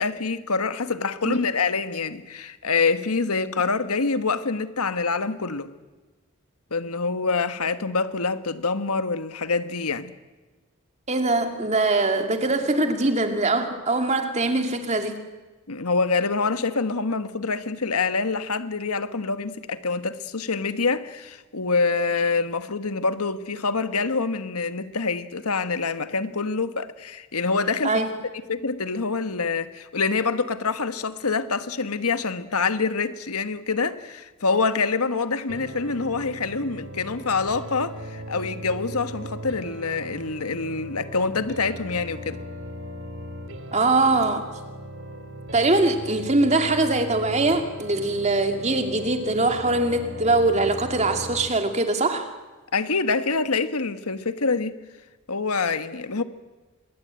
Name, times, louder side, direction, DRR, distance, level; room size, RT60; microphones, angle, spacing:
voice 1, 0.0-5.7 6.7-10.1 15.7-28.0 28.5-42.4 52.7-54.8 55.3-56.2, left 4 dB, 85° left, 1.5 m, -26 dB
voice 2, 11.1-15.2 27.8-28.1 43.7-44.5 45.5-52.3, right 2 dB, 30° right, 2.5 m, -22 dB
sound 1, 35.5-51.5, equal, 60° right, 2.8 m, -38 dB
25.5 x 22.0 x 9.0 m
head